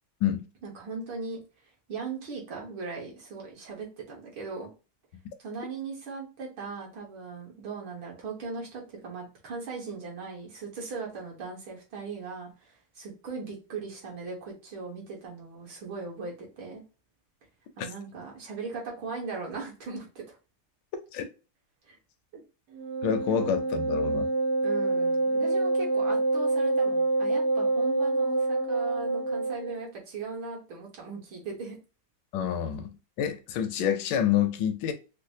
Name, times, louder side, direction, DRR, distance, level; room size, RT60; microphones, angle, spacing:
voice 1, 0.6-1.4 1.9-4.7 5.4-16.8 17.8-20.4 21.8-22.0 22.3-22.4 24.6-31.8, right 4 dB, 65° right, 2.0 m, -38 dB
Wind instrument woodwind instrument, 22.7-29.8, right 2 dB, 85° right, 1.8 m, -26 dB
voice 2, 23.0-24.3 32.3-34.9, left 9 dB, 70° left, 1.2 m, -27 dB
5.2 x 2.1 x 2.6 m
omnidirectional pair, 2.4 m